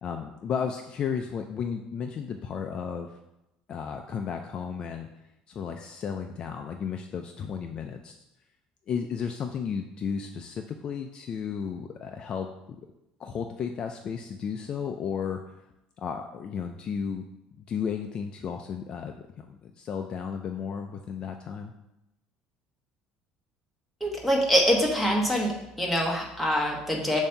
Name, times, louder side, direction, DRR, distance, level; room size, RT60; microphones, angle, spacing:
voice 1, 0.0-3.1 3.7-5.1 5.5-8.1 8.9-12.8 13.2-15.4 16.0-17.3 17.6-21.7, left 7 dB, 35° left, 5 dB, 0.4 m, -33 dB
voice 2, 24.0-25.5 25.8-27.2, equal, ahead, -1 dB, 1.0 m, -24 dB
7.0 x 2.7 x 5.6 m, 0.89 s
cardioid pair, 165°, 3 cm